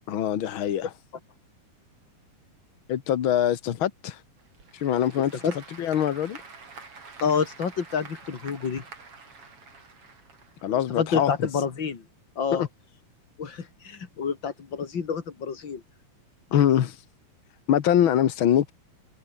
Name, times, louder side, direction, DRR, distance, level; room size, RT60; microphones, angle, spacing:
voice 1, 0.1-0.9 2.9-4.2 4.7-5.4 5.8-6.4 10.6-11.3 12.5-12.7 16.5-17.0 17.7-18.7, left 10 dB, 75° left, 1.1 m, -23 dB
Applause / Crowd, 4.4-11.0, right 4 dB, 40° right, 4.8 m, -47 dB
voice 2, 7.2-8.8 10.7-12.0 12.4-12.7 13.4-15.8, left 6 dB, 35° left, 2.7 m, -28 dB
omnidirectional pair, 4.1 m